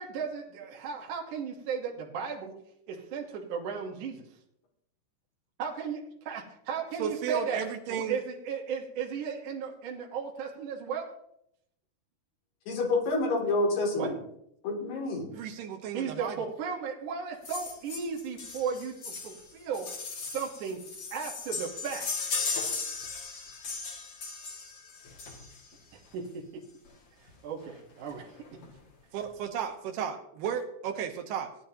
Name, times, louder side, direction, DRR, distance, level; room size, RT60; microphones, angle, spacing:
voice 1, 0.0-2.6 2.9-4.2 5.6-7.6 7.9-11.1 14.0-14.1 15.9-19.9 20.3-20.8 21.1-22.1 25.9-26.6 27.4-28.3, right 6 dB, 60° right, -1 dB, 2.5 m, -35 dB
voice 2, 7.0-8.2 15.3-16.5 29.1-31.5, right 8 dB, 80° right, 5 dB, 2.9 m, -34 dB
voice 3, 12.7-14.1 14.6-15.3, left 2 dB, 75° left, -1 dB, 4.9 m, -28 dB
sound 1, 17.4-25.8 26.9-27.0 27.3-27.4 27.6-27.8 28.1-28.7 29.2-29.3, left 4 dB, 45° left, 2.6 m, -37 dB
18.0 x 11.0 x 2.9 m, 0.75 s
omnidirectional pair, 4.7 m